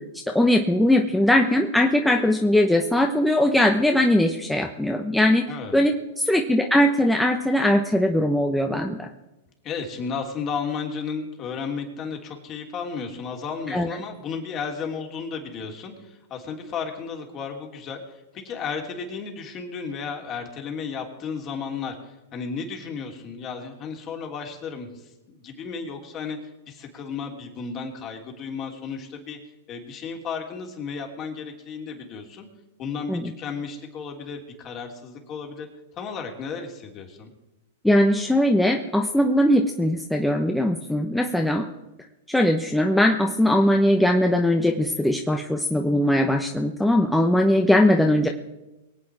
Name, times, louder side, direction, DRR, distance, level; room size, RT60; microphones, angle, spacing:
voice 1, 0.3-5.4 5.7-9.1 13.7-13.9 33.1-33.3 37.8-41.7 42.3-48.3, left 1 dB, 5° left, 3 dB, 1.0 m, -20 dB
voice 2, 9.6-26.4 26.7-29.4 29.7-32.5 32.8-35.7 35.9-37.3, left 5 dB, 35° left, 2 dB, 3.2 m, -33 dB
23.0 x 8.5 x 4.8 m, 0.99 s
hypercardioid pair, 120°, 0 cm